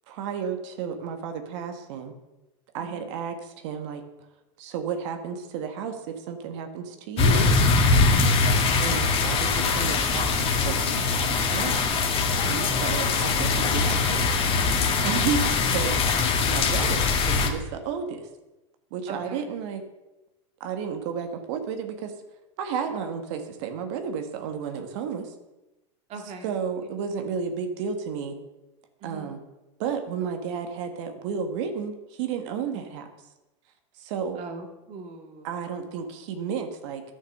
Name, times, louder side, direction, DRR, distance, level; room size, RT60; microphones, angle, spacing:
voice 1, 0.1-2.1 2.7-4.0 4.6-7.5 8.7-14.4 15.0-18.3 18.9-19.8 20.6-22.1 22.6-25.3 26.4-28.4 29.0-29.4 29.8-33.1 34.0-34.4 35.4-37.0, right 6 dB, 65° right, 6 dB, 1.6 m, -32 dB
sound 1, 7.2-17.5, left 4 dB, 35° left, 1.8 m, -22 dB
voice 2, 8.1-8.5 12.6-13.0 15.1-15.3 19.1-19.4 26.1-26.5 26.8-26.9 29.0-29.4 32.7-32.8 34.4-35.5, right 4 dB, 40° right, 4 dB, 2.2 m, -41 dB
10.5 x 6.4 x 6.6 m, 1.0 s
hypercardioid pair, 115°, 16 cm